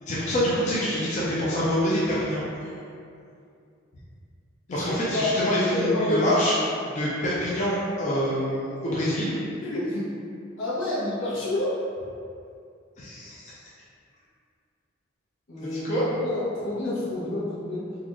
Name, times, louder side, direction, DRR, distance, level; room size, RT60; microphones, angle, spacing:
voice 1, 0.0-2.4 4.7-6.5 6.8-9.4 13.0-13.5 15.6-16.0, equal, 40° left, -8 dB, 0.5 m, -26 dB
voice 2, 4.7-5.3 5.7-6.3 9.6-10.1 10.6-11.8 15.5-17.8, left 1 dB, 80° left, -9 dB, 1.1 m, -28 dB
3.8 x 2.4 x 3.0 m, 2.4 s
head